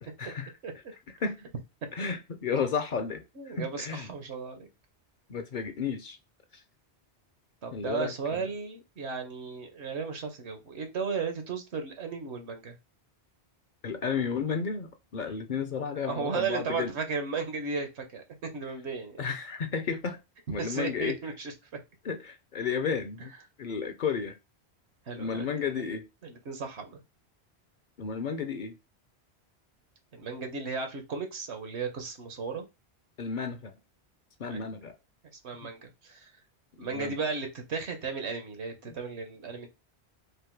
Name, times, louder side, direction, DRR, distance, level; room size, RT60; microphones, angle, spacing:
voice 1, 0.0-0.8 1.2-1.5 1.9-4.1 5.3-6.2 6.5-6.6 7.7-8.4 13.8-16.9 18.7-18.8 19.2-20.2 20.5-21.2 22.0-23.3 23.6-24.4 25.2-26.1 28.0-28.8 33.2-33.7 34.4-34.9 36.8-37.3 38.8-39.0, left 6 dB, 55° left, 0.7 m, -33 dB
voice 2, 3.4-4.7 7.6-12.7 15.2-15.4 15.9-19.2 20.6-21.5 25.1-25.8 26.2-27.0 30.1-32.7 34.4-34.7 35.4-36.3 36.8-39.7, right 5 dB, 90° right, 1.4 m, -35 dB
4.9 x 2.1 x 4.5 m
omnidirectional pair, 1.1 m